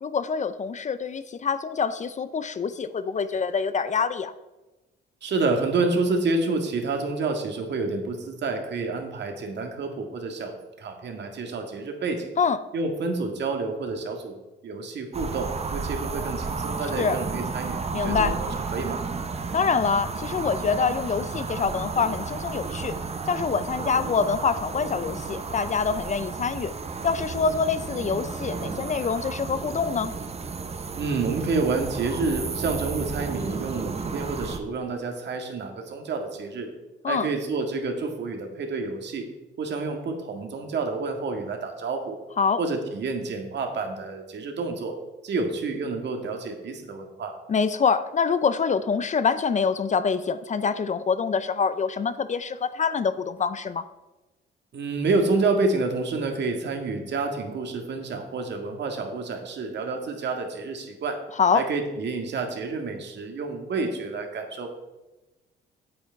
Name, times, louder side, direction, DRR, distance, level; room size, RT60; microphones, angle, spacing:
voice 1, 0.0-4.3 12.4-12.6 17.0-17.2 17.9-18.4 19.5-22.9 23.3-26.7 27.0-30.1 37.0-37.3 42.4-42.6 47.5-53.8 61.4-61.6, left 5 dB, 35° left, 13 dB, 0.6 m, -25 dB
voice 2, 5.2-12.3 12.7-14.4 14.6-19.0 30.9-36.7 37.1-39.3 39.6-42.2 42.6-45.0 45.2-47.3 54.7-61.2 61.5-64.8, right 3 dB, 60° right, 4 dB, 1.9 m, -29 dB
sound 1, 15.1-34.6, right 4 dB, 30° right, 0.9 m, -33 dB
8.6 x 8.2 x 4.6 m, 1.1 s
cardioid pair, 90°, 20 cm